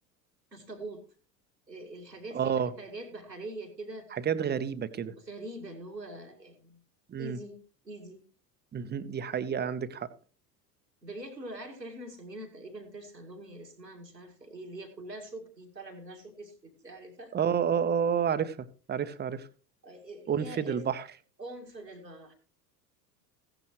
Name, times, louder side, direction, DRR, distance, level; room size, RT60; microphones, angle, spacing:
voice 1, 0.5-1.0 1.7-4.1 5.2-6.8 7.2-7.6 7.8-8.2 11.0-17.3 19.8-20.8 21.4-22.3, right 1 dB, 90° right, 2.3 m, -44 dB
voice 2, 2.3-2.7 4.1-5.1 7.1-7.4 8.7-10.1 17.3-19.5 20.3-21.1, right 7 dB, 20° right, 0.9 m, -30 dB
16.0 x 11.0 x 3.1 m
figure-of-eight pair, 80°, 48 cm